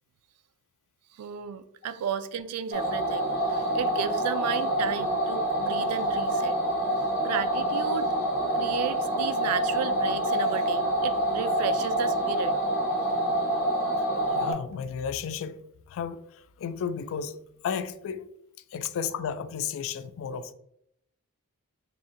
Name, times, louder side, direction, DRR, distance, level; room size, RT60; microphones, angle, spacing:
voice 1, 1.1-6.6 7.0-8.1 8.5-12.6, right 8 dB, 80° right, 0.3 m, -34 dB
sound 1, 2.7-14.5, right 1 dB, 45° left, 0.9 m, -27 dB
voice 2, 14.3-15.6 15.9-18.3 18.7-20.5, left 7 dB, 65° left, 0.3 m, -33 dB
4.1 x 2.6 x 2.5 m
head